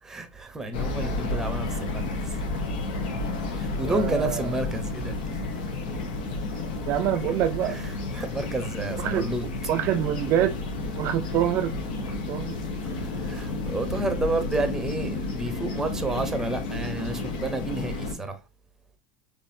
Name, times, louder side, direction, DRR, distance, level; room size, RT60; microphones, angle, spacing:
voice 1, 0.0-2.4 3.5-5.4 7.7-9.5 12.8-18.4, right 2 dB, 10° right, 0.7 m, -31 dB
sound 1, 0.7-18.1, left 2 dB, 85° left, 1.1 m, -31 dB
voice 2, 3.8-4.4 6.9-7.8 9.0-9.3 9.7-10.6 10.9-12.6, right 11 dB, 50° right, 0.3 m, -26 dB
4.1 x 3.3 x 2.6 m
supercardioid pair, 140°, 5 cm